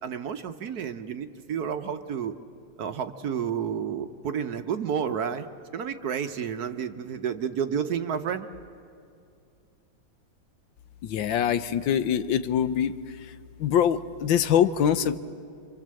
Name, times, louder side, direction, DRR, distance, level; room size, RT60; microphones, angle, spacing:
voice 1, 0.0-2.3 2.8-5.5 5.7-8.5, right 7 dB, 60° right, 8 dB, 1.2 m, -30 dB
voice 2, 11.0-12.9 13.6-15.2, left 9 dB, 75° left, 13 dB, 1.5 m, -23 dB
27.5 x 25.0 x 7.6 m, 2.4 s
omnidirectional pair, 2.1 m